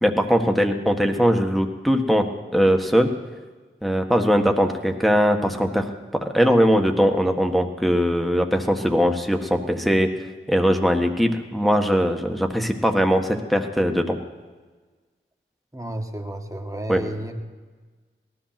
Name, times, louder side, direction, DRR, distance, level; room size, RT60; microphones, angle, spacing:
voice 1, 0.0-3.1 3.8-10.1 10.5-14.2 16.9-17.0, equal, ahead, 4 dB, 1.6 m, -20 dB
voice 2, 15.7-17.4, right 1 dB, 15° right, 3 dB, 1.8 m, -32 dB
18.0 x 13.5 x 6.0 m, 1.4 s
wide cardioid pair, 40°, 21 cm